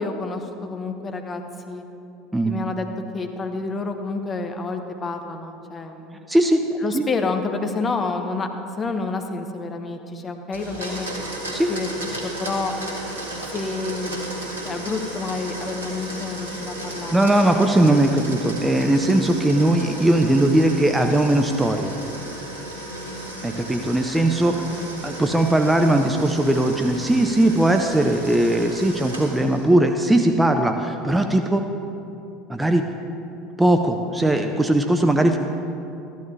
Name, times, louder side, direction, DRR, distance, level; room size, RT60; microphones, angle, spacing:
voice 1, 0.0-1.4 1.7-1.8 2.4-2.9 3.1-6.2 6.8-8.5 8.8-11.1 11.7-12.7 13.5-14.4 14.6-17.2 24.7-24.9, left 3 dB, 25° left, 5 dB, 1.1 m, -29 dB
voice 2, 6.3-6.7 6.9-7.1 11.5-11.7 17.1-21.9 23.4-31.6 32.5-32.9 33.6-35.4, right 1 dB, 10° right, 5 dB, 0.7 m, -19 dB
Domestic sounds home sounds, 10.5-29.7, right 1 dB, 80° right, 1.8 m, -34 dB
13.5 x 12.0 x 3.3 m, 2.7 s
figure-of-eight pair, 70°, 0 cm